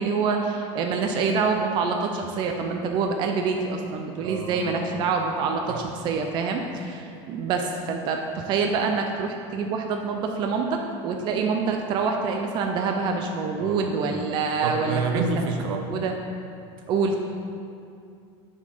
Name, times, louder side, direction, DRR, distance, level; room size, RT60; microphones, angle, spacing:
voice 1, 0.0-16.1 16.9-17.2, right 5 dB, 30° right, 3 dB, 0.4 m, -26 dB
voice 2, 4.2-5.0 5.7-5.8 13.6-13.9 14.6-15.8, right 4 dB, 75° right, 4 dB, 0.9 m, -29 dB
7.1 x 4.4 x 5.6 m, 2.5 s
cardioid pair, 165°, 15 cm